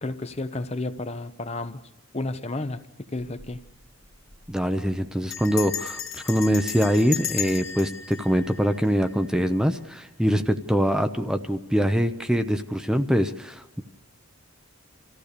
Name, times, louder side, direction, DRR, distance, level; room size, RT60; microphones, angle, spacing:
voice 1, 0.0-1.8 2.1-2.8 3.1-3.6, left 2 dB, 30° left, 0.9 m, -31 dB
Bell, 3.2-3.5 3.8-3.9 4.1-4.5 5.3-9.4, left 8 dB, 65° left, 2.1 m, -34 dB
voice 2, 4.5-13.8, equal, 5° right, 0.7 m, -24 dB
26.5 x 15.0 x 6.8 m
head